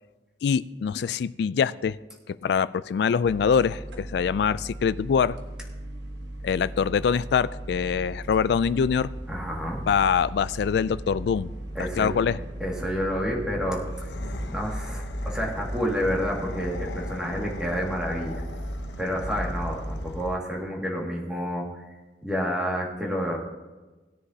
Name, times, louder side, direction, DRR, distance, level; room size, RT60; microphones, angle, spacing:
voice 1, 0.4-2.0 2.3-5.4 6.4-9.1 9.9-11.5 12.0-12.4, left 6 dB, 65° left, 17 dB, 0.3 m, -24 dB
sound 1, 3.2-20.1, right 1 dB, 85° right, 1.2 m, -37 dB
voice 2, 9.3-9.8 11.8-12.1 12.6-14.1 14.5-18.4 19.0-21.7 22.2-23.4, equal, 5° right, -3 dB, 2.0 m, -29 dB
sound 2, 13.8-20.6, left 1 dB, 85° left, 0.9 m, -38 dB
17.5 x 9.7 x 2.8 m, 1.2 s
head